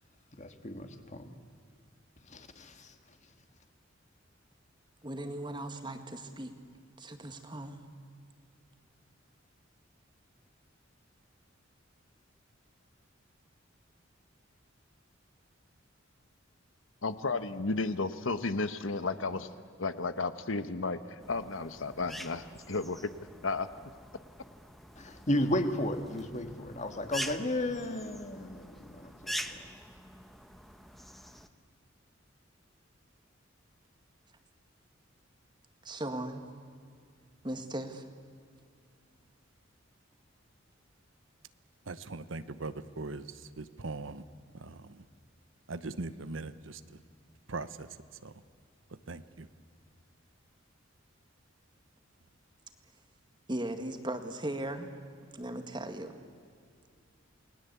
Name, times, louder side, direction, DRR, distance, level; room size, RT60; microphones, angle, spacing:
voice 1, 0.4-1.3 2.3-2.9 25.0-29.6, left 1 dB, 35° left, 7 dB, 1.8 m, -34 dB
voice 2, 5.0-6.5 7.0-7.8 35.8-36.4 37.4-38.0 53.5-54.9 55.3-56.1, right 1 dB, 25° right, 7 dB, 1.9 m, -37 dB
voice 3, 17.0-19.5 19.8-23.1 23.4-23.7, left 3 dB, 85° left, 12 dB, 1.2 m, -33 dB
sound 1, 21.2-31.5, equal, ahead, 1.1 m, -45 dB
voice 4, 41.9-44.2 44.5-45.0 45.7-47.0 47.5-47.9 48.2-48.4 48.9-49.5, right 3 dB, 75° right, 13 dB, 1.0 m, -41 dB
29.0 x 20.0 x 8.3 m, 2.2 s
head